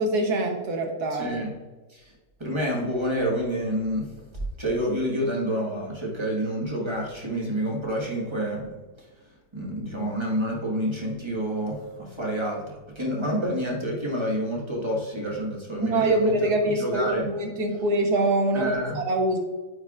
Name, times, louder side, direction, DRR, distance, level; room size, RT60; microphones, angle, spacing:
voice 1, 0.0-1.4 15.8-19.4, right 2 dB, 85° right, 3 dB, 1.6 m, -24 dB
voice 2, 1.1-1.5 1.9-2.0 2.4-4.0 4.6-8.6 9.5-12.6 12.9-16.5 16.7-17.2 18.5-19.0, equal, 20° right, -3 dB, 1.5 m, -28 dB
9.4 x 4.5 x 2.4 m, 1.3 s
omnidirectional pair, 1.7 m